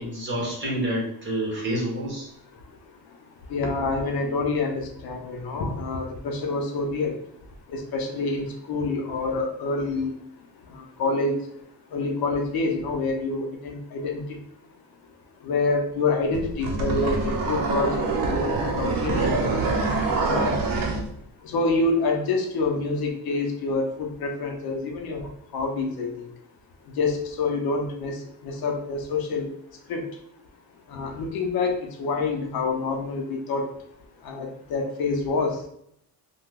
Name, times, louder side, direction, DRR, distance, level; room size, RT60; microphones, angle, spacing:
voice 1, 0.0-2.3, right 1 dB, 30° right, -4 dB, 1.2 m, -28 dB
voice 2, 3.5-7.2 7.7-10.1 10.7-11.4 11.9-14.4 15.4-20.5 21.4-26.2 27.0-28.1 28.4-29.5 29.9-30.0 30.9-33.7 34.2-35.6, left 3 dB, 65° left, 2 dB, 0.6 m, -27 dB
sound 1, 16.3-21.0, right 3 dB, 55° right, 0.7 m, -25 dB
2.8 x 2.2 x 3.5 m, 0.71 s
cardioid pair, 155°, 40 cm